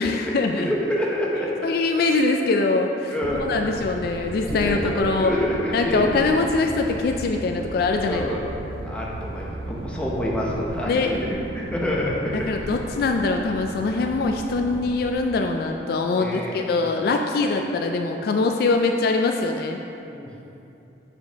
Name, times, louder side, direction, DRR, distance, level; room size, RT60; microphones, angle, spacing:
voice 1, 0.0-0.7 1.6-3.1 3.4-5.3 5.7-8.3 10.8-11.2 12.3-19.8, left 3 dB, 55° left, 3 dB, 0.3 m, -23 dB
voice 2, 0.7-1.7 3.1-3.5 3.8-3.9 4.3-6.1 8.0-8.4 8.8-12.5 16.2-16.6 17.5-17.6 20.0-20.3, left 1 dB, 5° left, -4 dB, 0.7 m, -27 dB
sound 1, 3.2-15.1, right 2 dB, 55° right, 0.4 m, -36 dB
6.7 x 4.9 x 3.4 m, 2.8 s
head